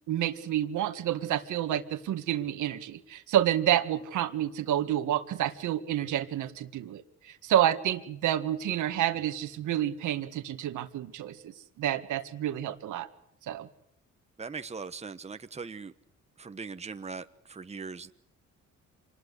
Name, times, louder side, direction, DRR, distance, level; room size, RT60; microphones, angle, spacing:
voice 1, 0.1-13.1 13.5-13.7, right 11 dB, 80° right, 8 dB, 2.0 m, -29 dB
voice 2, 14.4-15.9 16.4-18.1, right 4 dB, 20° right, 10 dB, 1.2 m, -40 dB
26.5 x 20.5 x 8.2 m, 0.72 s
cardioid pair, 90°, 30 cm